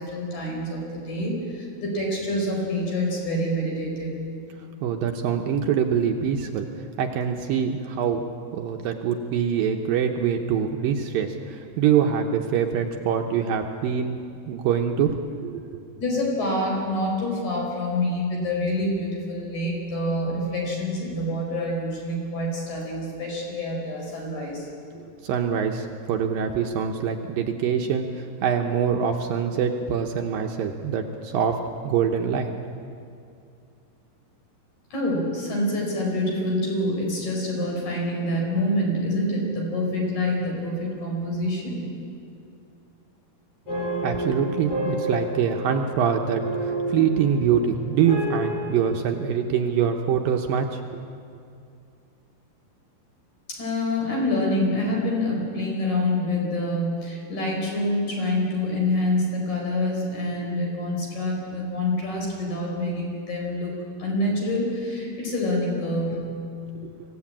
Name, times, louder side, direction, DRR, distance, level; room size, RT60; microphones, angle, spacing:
voice 1, 0.0-4.2 16.0-24.7 34.9-41.9 53.5-66.3, left 1 dB, 50° left, -1 dB, 6.1 m, -26 dB
voice 2, 4.8-8.3 8.5-14.2 14.5-15.6 25.2-32.5 44.0-51.0 66.8-66.9, right 7 dB, 75° right, 4 dB, 2.4 m, -24 dB
sound 1, 43.7-48.7, equal, 75° left, 9.8 m, -30 dB
25.5 x 16.0 x 8.7 m, 2.5 s
omnidirectional pair, 4.6 m